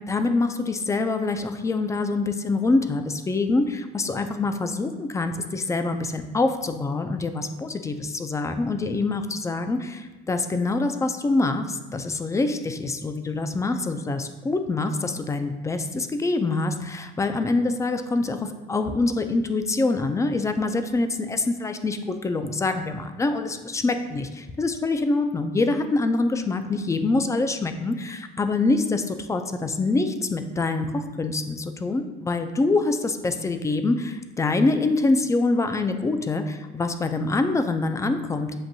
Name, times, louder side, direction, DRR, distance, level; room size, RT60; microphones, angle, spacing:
voice 1, 0.1-38.5, left 3 dB, 15° left, 8 dB, 0.3 m, -25 dB
7.5 x 2.6 x 2.6 m, 1.1 s
supercardioid pair, 100°, 21 cm